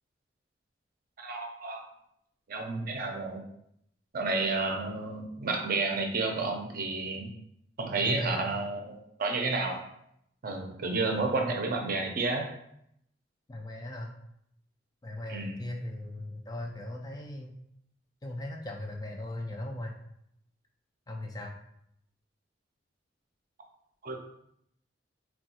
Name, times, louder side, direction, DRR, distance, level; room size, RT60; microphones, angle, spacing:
voice 1, 1.2-1.8 2.5-3.4 4.1-7.3 7.8-9.8 10.4-12.5 15.3-15.6 24.0-24.2, right 3 dB, 50° right, 2 dB, 0.5 m, -31 dB
voice 2, 8.0-8.5 13.5-14.1 15.0-17.5 18.2-20.0 21.1-21.5, left 1 dB, 20° left, 1 dB, 0.3 m, -38 dB
3.5 x 2.3 x 2.7 m, 0.73 s
head